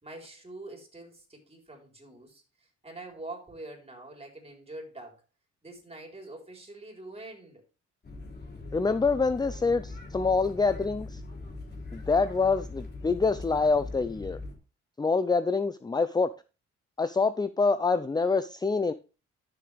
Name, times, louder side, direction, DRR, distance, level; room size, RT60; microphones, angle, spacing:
voice 1, 0.0-5.2 5.6-7.6, right 2 dB, 20° right, 4.0 m, -45 dB
Plane Interior, 8.0-14.6, left 2 dB, 35° left, 3.3 m, -41 dB
voice 2, 8.7-11.2 11.9-14.4 15.0-16.3 17.0-18.9, left 4 dB, 15° left, 0.5 m, -26 dB
11.5 x 7.0 x 3.4 m
cardioid pair, 90°, 30 cm